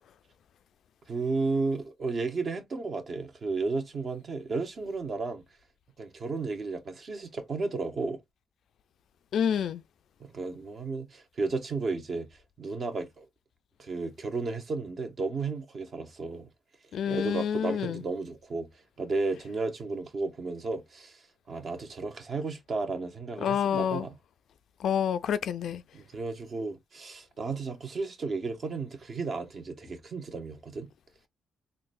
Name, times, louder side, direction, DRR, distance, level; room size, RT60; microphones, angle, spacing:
voice 1, 1.1-5.4 6.0-8.2 10.2-12.3 12.6-13.3 13.8-16.5 17.1-24.2 25.9-30.9, right 3 dB, 45° right, 0.8 m, -33 dB
voice 2, 9.3-9.8 16.9-18.0 23.4-24.1 24.8-25.8, left 8 dB, 70° left, 0.3 m, -28 dB
3.8 x 2.1 x 2.5 m
cardioid pair, 90°, 0 cm